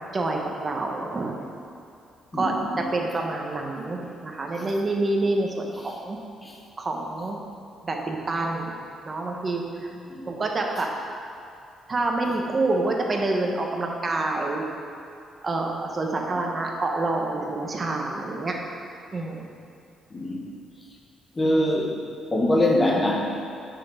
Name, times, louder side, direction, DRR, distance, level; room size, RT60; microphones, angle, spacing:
voice 1, 0.1-1.4 2.3-6.2 6.8-7.4 7.8-8.7 9.0-9.9 10.3-10.9 11.9-14.6 15.4-18.6 19.1-19.5, right 2 dB, 35° right, 1 dB, 1.1 m, -27 dB
voice 2, 2.3-2.9 6.4-6.5 10.1-10.2 20.1-20.5 21.3-22.0 22.3-23.4, left 1 dB, 25° left, -1 dB, 1.4 m, -23 dB
7.5 x 6.0 x 5.0 m, 2.5 s
cardioid pair, 90°, 0 cm